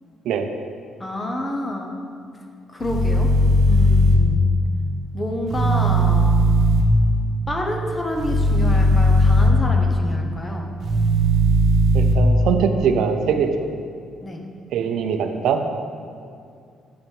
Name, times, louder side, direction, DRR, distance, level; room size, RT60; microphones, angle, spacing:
voice 1, 1.0-1.9 2.7-3.3 3.7-4.5 5.1-6.4 7.5-10.7 14.2-14.4, left 1 dB, 20° left, 1 dB, 0.9 m, -28 dB
sound 1, 2.8-4.1 5.5-6.8 8.2-9.5 10.8-12.1, equal, 55° right, 1.0 m, -17 dB
voice 2, 11.9-13.5 14.7-15.6, right 7 dB, 75° right, 7 dB, 0.5 m, -22 dB
8.4 x 5.2 x 4.6 m, 2.3 s
cardioid pair, 135°, 0 cm